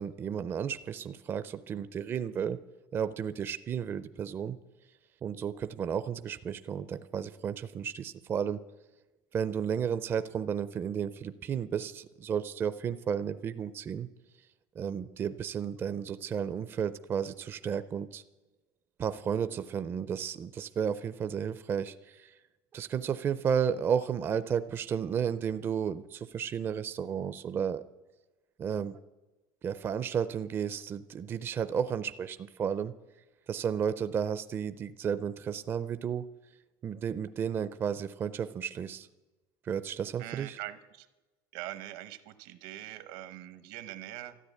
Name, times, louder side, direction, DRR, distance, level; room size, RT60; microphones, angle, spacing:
voice 1, 0.0-2.6 2.9-4.6 5.2-8.6 9.3-14.1 14.8-18.2 19.0-22.3 22.7-27.8 28.6-29.0 29.6-32.9 33.5-36.3 36.8-39.1 39.7-40.6, right 7 dB, 25° right, 13 dB, 0.4 m, -33 dB
voice 2, 40.2-41.1 41.5-44.4, right 15 dB, 80° right, 12 dB, 1.0 m, -43 dB
13.5 x 9.5 x 8.3 m, 1.1 s
cardioid pair, 165°, 10 cm